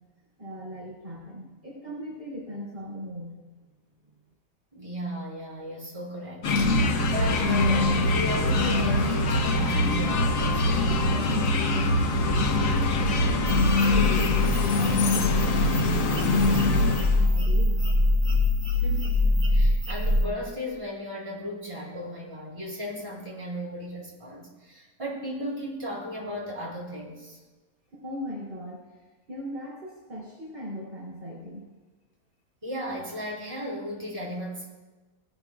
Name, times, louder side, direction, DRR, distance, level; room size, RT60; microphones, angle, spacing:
voice 1, 0.4-3.4 13.4-17.9 27.9-28.8 29.3-31.6, equal, 35° right, -6 dB, 3.5 m, -38 dB
voice 2, 4.7-6.5 7.0-11.4 18.7-27.4 32.6-34.7, equal, 20° right, -5 dB, 4.2 m, -35 dB
sound 1, 6.4-17.3, left 2 dB, 65° left, 1.3 m, -23 dB
sound 2, 13.5-20.3, left 2 dB, 80° right, 5.2 m, -24 dB
18.5 x 12.0 x 2.4 m, 1.2 s
omnidirectional pair, 1.5 m